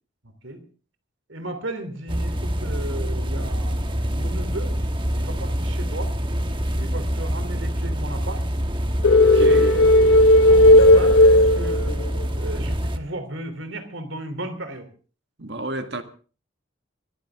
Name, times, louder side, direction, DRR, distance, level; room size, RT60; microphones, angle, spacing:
voice 1, 1.3-4.7 5.1-6.1 6.8-8.4 9.4-12.0 12.4-14.9, right 1 dB, 80° right, 3.3 m, -35 dB
sound 1, 2.1-13.0, equal, 25° right, 1.3 m, -26 dB
sound 2, 9.0-12.2, left 1 dB, 85° left, 1.1 m, -14 dB
voice 2, 9.1-9.8 15.4-16.0, right 1 dB, 60° right, 1.9 m, -32 dB
24.5 x 14.5 x 3.6 m
head